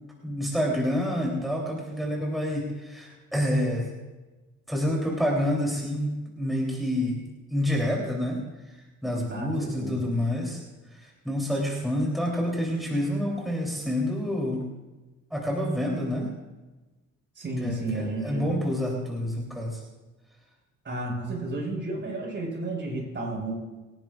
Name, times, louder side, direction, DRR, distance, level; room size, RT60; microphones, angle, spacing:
voice 1, 0.2-3.9 4.7-8.4 8.7-8.8 9.0-10.6 10.9-14.6 15.3-16.3 17.6-19.8, equal, ahead, -3 dB, 3.3 m, -28 dB
voice 2, 9.3-10.1 17.4-18.5 20.8-23.5, right 2 dB, 40° right, -1 dB, 5.4 m, -32 dB
26.5 x 10.5 x 2.5 m, 1.1 s
cardioid pair, 90°, 30 cm